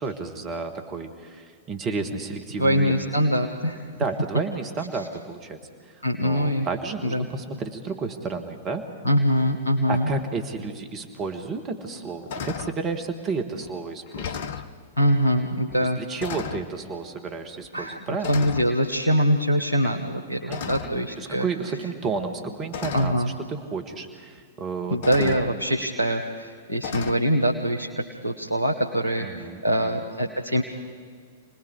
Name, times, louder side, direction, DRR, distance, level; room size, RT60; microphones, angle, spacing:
voice 1, 0.0-2.9 4.0-5.6 5.9-6.0 6.2-8.8 9.9-14.5 15.8-18.5 20.5-23.1 23.5-25.4 29.2-30.0, right 4 dB, 30° right, 6 dB, 1.9 m, -32 dB
voice 2, 2.6-3.8 6.0-6.7 7.0-7.3 9.0-10.1 15.0-16.0 17.7-21.5 22.9-23.3 24.9-30.6, equal, 85° left, 1 dB, 1.4 m, -23 dB
sound 1, 11.2-11.3 11.8-12.0 12.3-12.8 13.6-13.7 14.1-14.7 15.7-15.9 16.2-16.7 17.6-17.9 18.2-18.7 20.5-21.1 22.2-22.3 22.7-23.2 24.4-24.5 25.0-25.5 26.8-27.1, left 7 dB, 55° left, 1.0 m, -34 dB
28.5 x 20.0 x 4.9 m, 2.1 s
figure-of-eight pair, 100°, 0 cm